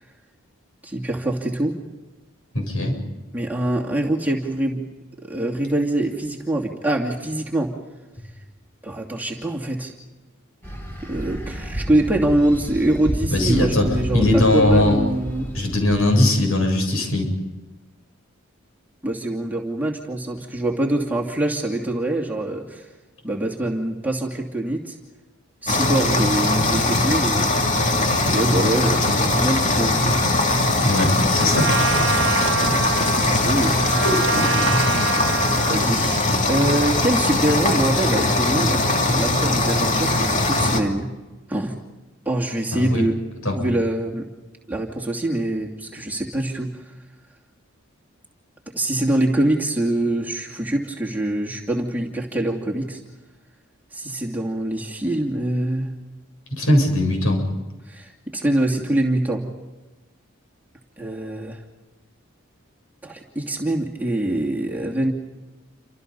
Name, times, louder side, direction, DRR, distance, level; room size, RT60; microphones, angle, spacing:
voice 1, 0.8-1.8 3.3-4.8 5.2-7.7 8.8-9.9 11.0-15.5 19.0-22.9 23.2-25.0 25.6-27.6 28.3-30.2 32.6-32.8 33.2-33.8 35.7-41.1 41.5-41.7 42.2-43.1 43.5-44.2 44.7-46.7 48.7-53.0 53.9-55.9 57.9-59.4 61.0-61.6 63.0-65.1, right 1 dB, 10° right, -1 dB, 2.6 m, -24 dB
voice 2, 2.5-3.0 13.3-13.9 14.1-15.0 15.5-17.3 30.8-31.7 34.0-34.7 42.7-43.0 43.4-43.5 56.5-57.5, left 1 dB, 75° left, 3 dB, 7.9 m, -20 dB
sound 1, 10.6-16.0, equal, 10° left, 8.0 m, -30 dB
sound 2, 25.7-40.8, left 2 dB, 35° left, 2.7 m, -20 dB
Trumpet, 31.5-35.9, right 5 dB, 65° right, 0.9 m, -26 dB
29.5 x 26.5 x 5.5 m, 1.1 s
head